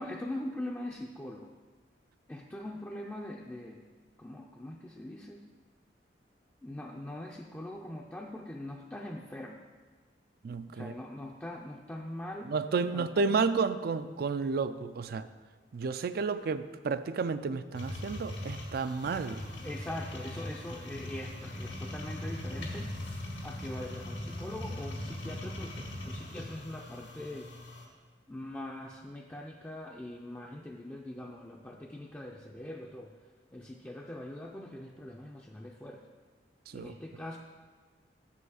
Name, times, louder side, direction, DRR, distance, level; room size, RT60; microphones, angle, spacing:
voice 1, 0.0-1.5 2.3-3.9 4.2-5.4 6.6-9.6 10.7-12.5 12.9-13.3 19.6-22.9 23.4-27.5 28.3-33.2 33.5-36.0 36.7-37.4, left 1 dB, 10° left, -1 dB, 0.4 m, -42 dB
voice 2, 10.4-11.0 12.5-15.3 15.7-19.4 36.7-36.9, right 4 dB, 55° right, 12 dB, 0.4 m, -31 dB
sound 1, 17.7-27.8, left 1 dB, 85° left, 1.9 m, -40 dB
7.3 x 5.5 x 6.3 m, 1.4 s
head